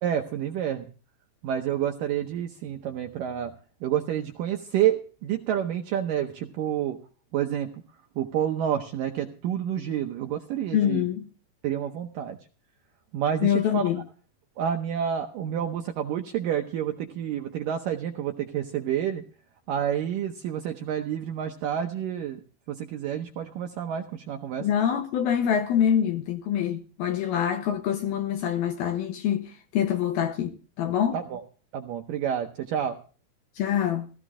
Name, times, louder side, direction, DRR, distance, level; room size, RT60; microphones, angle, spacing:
voice 1, 0.0-0.9 1.4-3.5 3.8-7.0 7.3-7.7 8.2-11.0 11.6-12.4 13.1-13.8 14.6-19.2 19.7-22.4 22.7-24.7 31.1-31.4 31.7-33.0, right 9 dB, 80° right, 1.9 m, -29 dB
voice 2, 10.7-11.3 13.4-14.0 24.6-31.2 33.6-34.1, left 9 dB, 75° left, 2.4 m, -25 dB
16.5 x 14.0 x 3.7 m
omnidirectional pair, 5.0 m